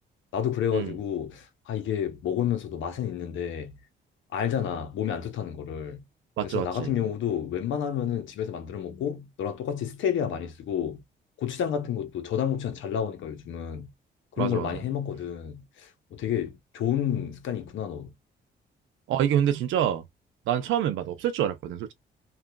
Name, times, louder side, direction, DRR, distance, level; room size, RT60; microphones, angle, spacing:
voice 1, 0.3-3.8 4.3-6.1 6.4-11.0 11.4-13.9 14.4-18.1, left 9 dB, 75° left, 0.8 m, -30 dB
voice 2, 6.4-6.9 14.4-14.7 19.1-20.0 20.5-21.9, right 10 dB, 85° right, 0.5 m, -26 dB
2.9 x 2.4 x 2.2 m
cardioid pair, 90°, 20 cm